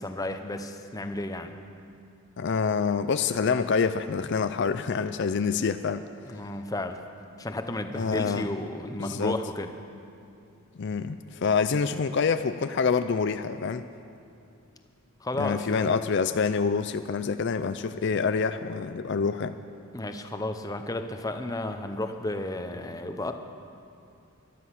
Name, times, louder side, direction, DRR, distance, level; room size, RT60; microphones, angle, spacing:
voice 1, 0.0-1.5 6.3-7.0 7.4-9.7 15.2-15.9 19.9-23.3, left 1 dB, 15° left, 7 dB, 0.7 m, -33 dB
voice 2, 2.4-6.0 7.9-8.5 9.0-9.4 10.8-13.9 15.4-19.5, left 5 dB, 55° left, 10 dB, 0.4 m, -26 dB
17.5 x 12.5 x 5.9 m, 2.6 s
head